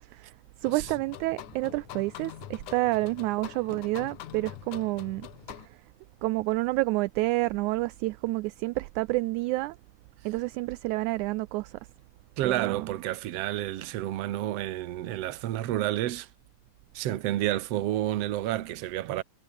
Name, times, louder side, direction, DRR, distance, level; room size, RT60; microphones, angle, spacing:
sound 1, 0.6-5.7, left 13 dB, 70° left, 2.5 m, -44 dB
voice 1, 0.6-5.3 5.6-5.8 6.2-9.8 10.3-11.8 12.4-12.9, right 21 dB, 80° right, 1.8 m, -29 dB
voice 2, 12.4-16.3 17.0-19.2, right 13 dB, 60° right, 1.9 m, -30 dB
omnidirectional pair, 3.7 m